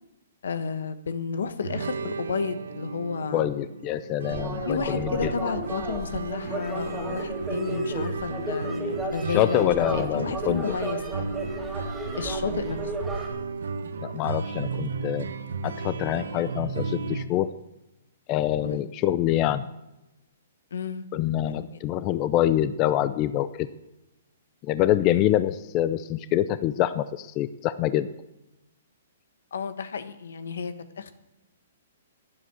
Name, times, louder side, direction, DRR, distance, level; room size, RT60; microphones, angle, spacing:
voice 1, 0.4-3.5 4.6-11.4 12.2-12.9 18.6-18.8 20.7-21.1 21.5-21.7 25.0-25.2 29.5-31.1, left 5 dB, 80° left, 12 dB, 1.3 m, -32 dB
sound 1, 1.6-17.2, right 4 dB, 90° right, 1.0 m, -34 dB
voice 2, 3.3-5.3 9.3-10.6 14.0-15.3 15.6-17.5 18.3-19.7 21.1-23.7 24.6-28.1, left 12 dB, 30° left, 14 dB, 0.5 m, -25 dB
sound 2, 4.3-13.3, right 2 dB, 5° right, 2.5 m, -33 dB
12.0 x 10.0 x 8.0 m, 0.95 s
hypercardioid pair, 150°, 0 cm